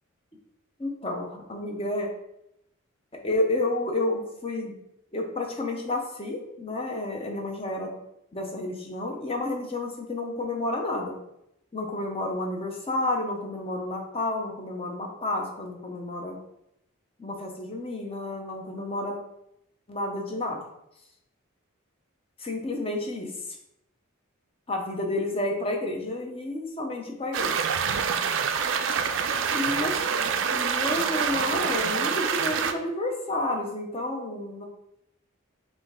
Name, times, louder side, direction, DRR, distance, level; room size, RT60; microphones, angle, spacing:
voice 1, 0.8-2.1 3.1-4.7 5.1-8.0 8.3-11.2 11.7-16.4 17.2-19.2 19.9-20.6 22.4-23.3 24.7-27.7 29.5-34.6, left 2 dB, 25° left, 1 dB, 0.7 m, -30 dB
sound 1, 27.3-32.7, right 6 dB, 60° right, 0.3 m, -26 dB
5.0 x 2.6 x 3.6 m, 0.80 s
head